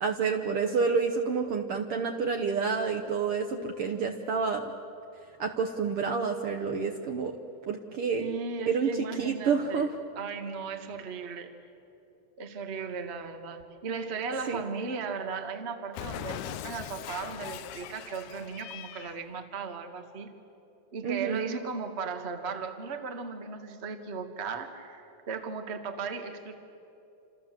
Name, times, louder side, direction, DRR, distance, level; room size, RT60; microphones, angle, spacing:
voice 1, 0.0-4.7 5.4-7.4 7.7-8.4 8.7-8.9 9.2-9.9 14.5-14.6 21.0-21.6, right 5 dB, 60° right, 4 dB, 1.7 m, -29 dB
voice 2, 8.2-9.9 10.1-11.5 12.4-20.3 20.9-26.5, right 5 dB, 30° right, 6 dB, 1.4 m, -36 dB
Cat, 15.9-19.2, left 12 dB, 80° left, 2.1 m, -40 dB
29.0 x 27.0 x 7.6 m, 2.8 s
omnidirectional pair, 3.5 m